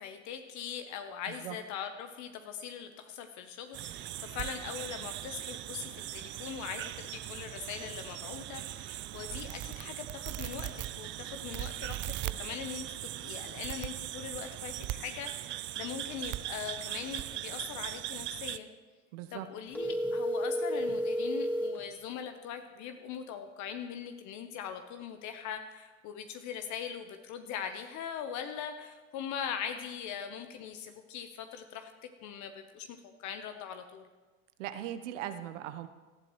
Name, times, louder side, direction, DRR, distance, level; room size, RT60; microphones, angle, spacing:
voice 1, 0.0-18.7 19.3-34.1, left 8 dB, 45° left, 7 dB, 1.0 m, -41 dB
sound 1, 3.7-18.6, right 15 dB, 30° right, 0.4 m, -39 dB
voice 2, 19.1-19.5 34.6-35.9, right 12 dB, 65° right, 10 dB, 1.1 m, -39 dB
sound 2, 19.7-21.8, equal, 5° left, 2.5 m, -31 dB
18.0 x 12.0 x 3.2 m, 1.3 s
hypercardioid pair, 100°, 39 cm